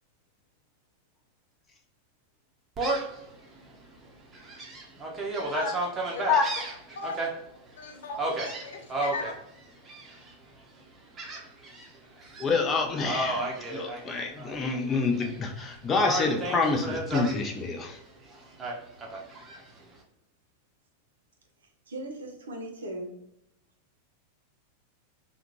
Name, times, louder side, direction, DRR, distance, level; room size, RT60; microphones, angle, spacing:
Gull seagull, 2.8-3.2 3.7-3.8 4.3-7.3 8.2-9.3 9.9-10.3 11.2-11.9 12.2-12.5 13.0-14.6 14.9-15.6 16.0-17.4 18.6-19.6, right 2 dB, 20° right, 0.8 m, -32 dB
voice 1, 6.3-6.7 12.4-18.0, left 4 dB, 25° left, 2 dB, 0.6 m, -27 dB
voice 2, 7.8-9.3, left 4 dB, 60° left, 4 dB, 0.6 m, -37 dB
voice 3, 21.9-23.1, right 1 dB, 70° right, 1 dB, 0.6 m, -38 dB
3.6 x 2.3 x 3.0 m, 0.85 s
figure-of-eight pair, 90°, 0 cm